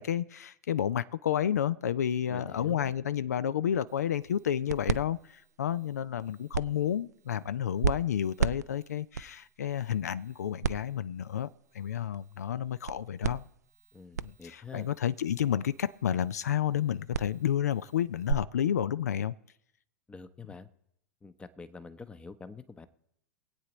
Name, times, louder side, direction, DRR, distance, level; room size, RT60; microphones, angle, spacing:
voice 1, 0.0-11.5 11.7-13.5 14.2-19.3, left 9 dB, 75° left, 17 dB, 0.3 m, -30 dB
voice 2, 2.3-2.9 13.9-14.9 20.1-20.7 21.2-22.9, left 4 dB, 10° left, 12 dB, 0.7 m, -46 dB
sound 1, 3.9-18.3, right 7 dB, 80° right, 0.4 m, -37 dB
23.5 x 8.4 x 3.0 m, 0.75 s
figure-of-eight pair, 95°, 9 cm